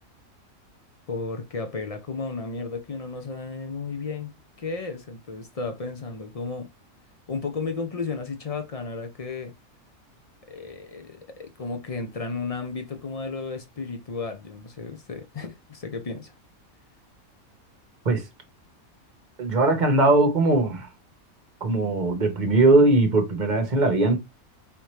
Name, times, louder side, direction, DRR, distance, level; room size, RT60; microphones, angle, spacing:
voice 1, 1.1-6.7 7.3-9.5 10.5-16.3, left 4 dB, 50° left, 0.4 m, -33 dB
voice 2, 19.4-20.9 21.6-24.2, right 2 dB, 35° right, 1.0 m, -20 dB
5.2 x 2.8 x 3.1 m
omnidirectional pair, 1.5 m